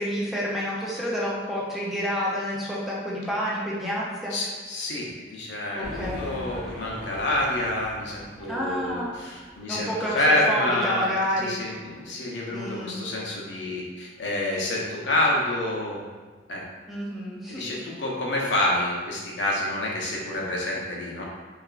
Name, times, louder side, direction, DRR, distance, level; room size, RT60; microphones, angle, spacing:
voice 1, 0.0-4.3 5.7-6.4 8.5-9.1 9.7-11.5 12.5-13.0 16.9-17.8, equal, ahead, -6 dB, 0.4 m, -29 dB
voice 2, 4.3-9.9 10.1-16.0 16.5-16.6 17.5-21.2, left 1 dB, 70° left, -3 dB, 0.6 m, -28 dB
sound 1, 5.8-9.6, equal, 40° right, 0.8 m, -40 dB
2.9 x 2.4 x 2.3 m, 1.4 s
head